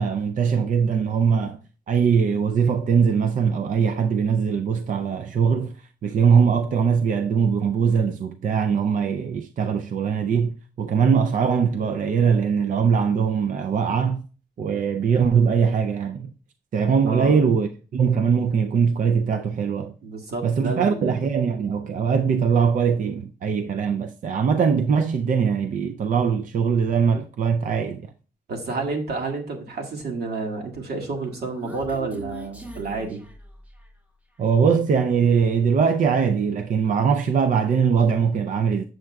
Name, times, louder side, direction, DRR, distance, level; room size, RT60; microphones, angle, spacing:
voice 1, 0.0-1.6 1.9-5.7 6.0-14.2 14.6-16.3 16.7-19.9 20.4-28.0 34.4-38.8, right 6 dB, 55° right, 0.4 m, -21 dB
voice 2, 17.1-17.4 20.0-21.1 28.5-33.2, right 3 dB, 90° right, 1.7 m, -30 dB
Human voice, 31.0-34.1, left 1 dB, 10° right, 0.8 m, -42 dB
7.7 x 7.4 x 2.3 m
wide cardioid pair, 120°, 16 cm